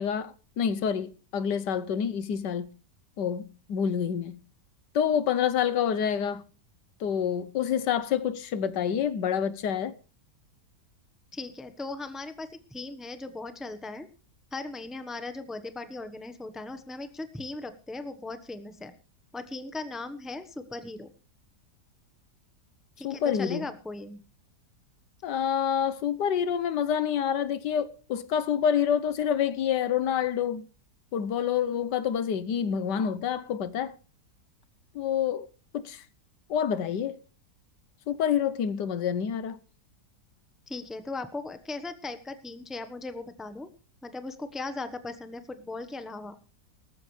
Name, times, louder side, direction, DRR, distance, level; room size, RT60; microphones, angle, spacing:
voice 1, 0.0-2.7 3.2-4.4 4.9-6.4 7.0-9.9 23.0-23.6 25.2-30.6 31.1-33.9 34.9-35.5 35.7-36.0 36.5-37.2 38.1-39.6, left 8 dB, 85° left, 1.6 m, -27 dB
voice 2, 11.3-14.1 14.5-18.9 19.3-21.1 23.0-24.2 40.7-43.7 44.0-46.4, left 3 dB, ahead, 0.9 m, -38 dB
18.5 x 14.5 x 3.3 m
omnidirectional pair, 1.8 m